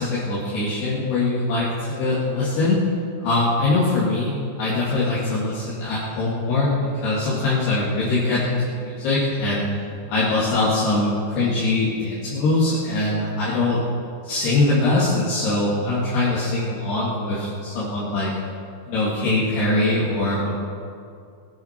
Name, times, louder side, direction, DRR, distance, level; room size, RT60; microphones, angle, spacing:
voice 1, 0.0-2.8 3.2-9.7 10.1-13.8 14.2-18.3 18.9-20.5, left 2 dB, 65° left, -8 dB, 4.2 m, -22 dB
21.5 x 13.0 x 4.5 m, 2.4 s
omnidirectional pair, 5.1 m